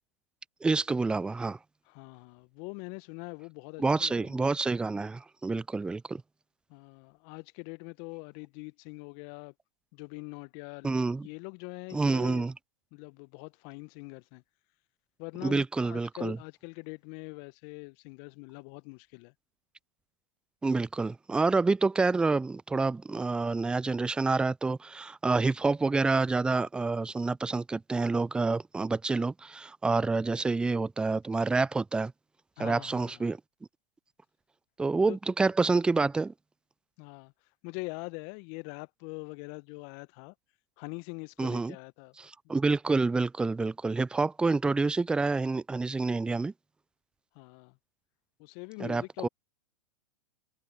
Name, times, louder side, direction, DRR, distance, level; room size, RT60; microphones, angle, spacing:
voice 1, 0.6-1.6 3.8-6.2 10.8-11.3 11.9-12.5 15.4-16.4 20.6-32.1 32.6-33.4 34.8-36.3 41.4-41.8 42.2-46.5 48.8-49.3, right 3 dB, 5° right, 0.3 m, -28 dB
voice 2, 1.9-4.5 6.7-9.5 9.9-11.0 11.2-12.5 12.9-14.4 15.2-19.3 32.6-33.2 35.1-35.2 37.0-37.3 37.6-40.3 40.8-42.1 47.3-47.8 48.4-49.3, left 32 dB, 45° left, 1.5 m, -43 dB
hypercardioid pair, 105°, 20 cm